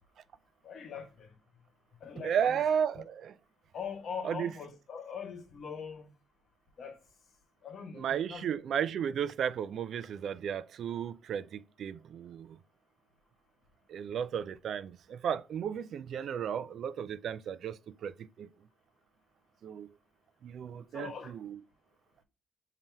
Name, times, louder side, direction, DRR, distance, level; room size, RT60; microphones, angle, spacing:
voice 1, 0.6-1.3 2.0-2.6 3.7-6.1 6.8-7.0 7.6-8.6 20.9-21.3, left 6 dB, 60° left, 1.2 m, -42 dB
voice 2, 2.2-3.3 4.2-4.5 7.9-12.6 13.9-18.5 19.6-19.9 20.4-21.6, right 8 dB, 65° right, 0.3 m, -34 dB
5.4 x 2.8 x 3.3 m
cardioid pair, 90°, 0 cm